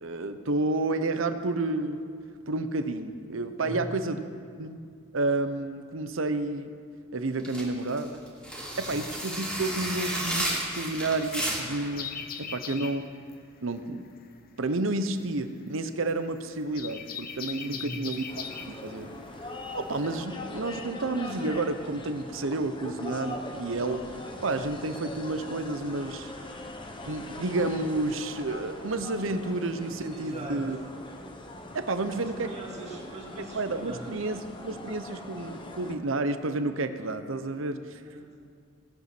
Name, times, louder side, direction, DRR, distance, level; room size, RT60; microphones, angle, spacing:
voice 1, 0.0-2.0 2.5-4.2 4.6-4.8 5.1-6.7 7.1-8.2 8.8-13.0 13.6-14.1 14.6-19.1 19.4-24.1 24.4-26.3 27.1-30.8 31.7-32.5 33.4-37.8, right 2 dB, 70° right, 10 dB, 0.8 m, -30 dB
voice 2, 3.6-4.2 8.8-9.0 12.4-12.5 17.6-18.1 30.1-30.7 32.1-34.3 38.0-38.3, right 1 dB, 30° right, -2 dB, 2.3 m, -41 dB
sound 1, 7.4-11.9, right 1 dB, 5° left, 2.5 m, -32 dB
sound 2, 11.9-20.2, left 7 dB, 45° left, 0.8 m, -40 dB
sound 3, 18.3-36.0, left 1 dB, 25° left, 1.0 m, -41 dB
17.5 x 8.4 x 6.0 m, 2.3 s
head